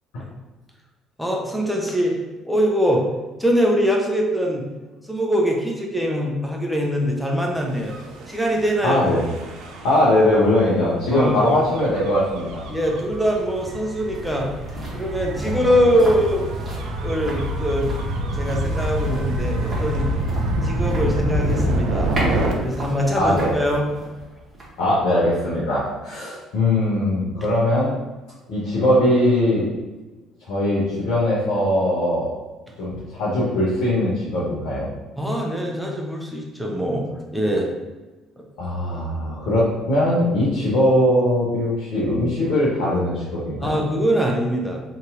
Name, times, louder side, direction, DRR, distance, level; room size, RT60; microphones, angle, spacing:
voice 1, 1.2-2.2 2.4-3.0 3.4-4.7 5.0-7.9 8.3-9.0 11.1-11.5 12.7-14.5 14.9-16.5 17.0-17.9 18.2-20.1 20.6-22.2 22.6-23.8 35.2-37.7 38.4-38.5 43.6-44.8, equal, 5° right, -1 dB, 0.7 m, -22 dB
Gull seagull / Waves surf / Siren, 7.8-22.5, right 1 dB, 65° right, 0.4 m, -27 dB
voice 2, 8.8-9.2 9.8-12.6 15.5-15.6 23.1-23.6 24.8-28.0 28.5-29.7 30.5-32.3 32.8-34.9 38.6-43.7, left 1 dB, 70° left, -8 dB, 0.8 m, -20 dB
sound 1, 13.0-26.1 26.4-26.5, right 2 dB, 35° right, 1.1 m, -36 dB
2.9 x 2.7 x 2.4 m, 1.2 s
hypercardioid pair, 55°, 0 cm